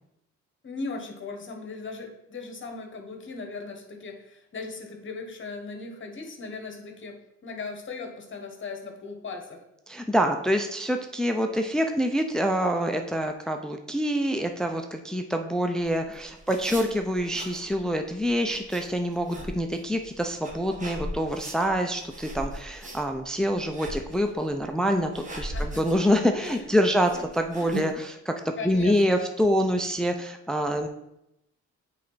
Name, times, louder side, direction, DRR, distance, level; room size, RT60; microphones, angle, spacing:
voice 1, 0.6-9.6 25.5-25.8 26.4-26.7 27.1-27.2 27.6-27.8 28.6-29.3, left 4 dB, 40° left, 4 dB, 1.3 m, -38 dB
voice 2, 9.9-30.9, equal, ahead, 5 dB, 0.5 m, -26 dB
sound 1, 15.8-27.9, right 1 dB, 25° right, 1.3 m, -39 dB
8.4 x 3.4 x 4.0 m, 0.84 s
cardioid pair, 90°, 30 cm